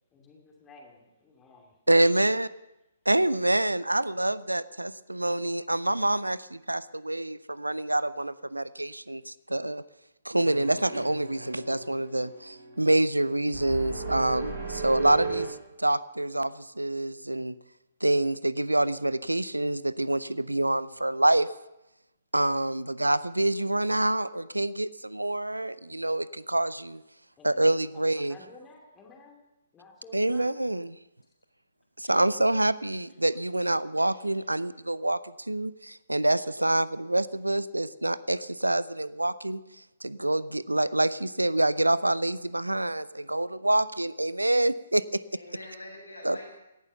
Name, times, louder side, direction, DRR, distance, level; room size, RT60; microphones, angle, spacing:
voice 1, 0.1-1.8 27.4-29.4 29.7-30.5 32.0-32.2, left 3 dB, 15° left, 0 dB, 2.7 m, -52 dB
voice 2, 1.9-2.5 3.1-9.8 10.2-17.5 18.0-21.5 22.3-27.0 27.4-28.3 30.1-31.0 32.0-39.6 40.0-45.2 46.2-46.4, right 1 dB, 80° right, 18 dB, 0.6 m, -26 dB
sound 1, 10.4-15.5, right 4 dB, 50° right, 7.2 m, -36 dB
voice 3, 34.0-34.4 45.3-46.6, left 1 dB, 80° left, -2 dB, 6.9 m, -46 dB
18.0 x 11.0 x 6.8 m, 0.92 s
figure-of-eight pair, 130°, 0 cm